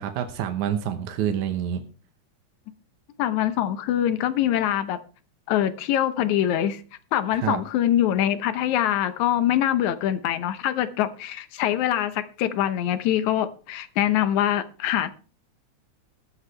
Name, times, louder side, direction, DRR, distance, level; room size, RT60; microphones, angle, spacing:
voice 1, 0.0-1.8 7.4-7.6, right 9 dB, 80° right, 2.4 m, -27 dB
voice 2, 3.2-5.0 5.5-6.8 7.1-15.1, left 11 dB, 80° left, 2.2 m, -24 dB
21.0 x 8.0 x 3.3 m
omnidirectional pair, 3.4 m